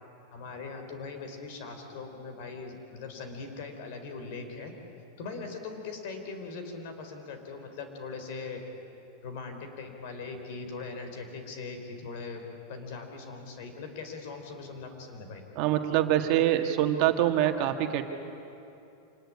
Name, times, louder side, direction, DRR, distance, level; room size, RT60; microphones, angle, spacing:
voice 1, 0.3-4.7 5.2-8.6 9.2-12.4 12.7-15.4, left 4 dB, 55° left, 5 dB, 4.4 m, -40 dB
voice 2, 15.6-18.0, right 12 dB, 45° right, 5 dB, 1.7 m, -25 dB
26.5 x 19.5 x 9.9 m, 2.8 s
supercardioid pair, 155°, 0 cm